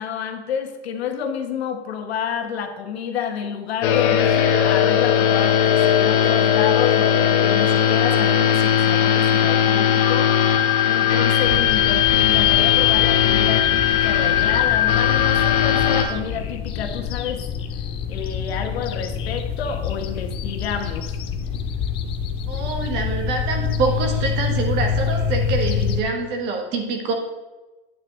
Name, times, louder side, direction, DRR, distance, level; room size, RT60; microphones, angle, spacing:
voice 1, 0.0-10.4 10.9-17.4 18.1-21.2, left 7 dB, 90° left, 5 dB, 1.4 m, -29 dB
sound 1, 3.8-16.0, left 9 dB, 55° left, 1.3 m, -18 dB
sound 2, 11.4-26.0, left 6 dB, 20° left, 0.3 m, -27 dB
voice 2, 22.5-27.1, right 4 dB, 35° right, 3 dB, 1.6 m, -25 dB
8.9 x 8.6 x 3.2 m, 1.2 s
supercardioid pair, 155°, 31 cm